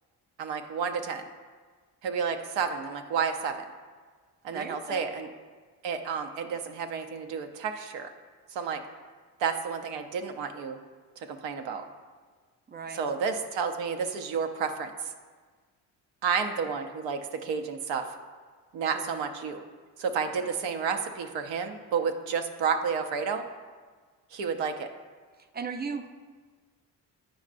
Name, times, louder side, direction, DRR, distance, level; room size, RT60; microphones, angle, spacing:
voice 1, 0.4-1.2 2.0-3.6 4.4-5.3 5.8-8.1 8.5-8.8 9.4-10.8 11.2-11.8 12.9-15.1 16.2-18.1 18.7-19.6 20.0-23.5 24.3-24.9, right 6 dB, 70° right, 6 dB, 0.7 m, -31 dB
voice 2, 4.5-5.1 12.7-13.0 18.9-19.1 25.5-26.1, right 5 dB, 20° right, 8 dB, 0.5 m, -36 dB
8.8 x 5.2 x 2.5 m, 1.5 s
supercardioid pair, 55°, 46 cm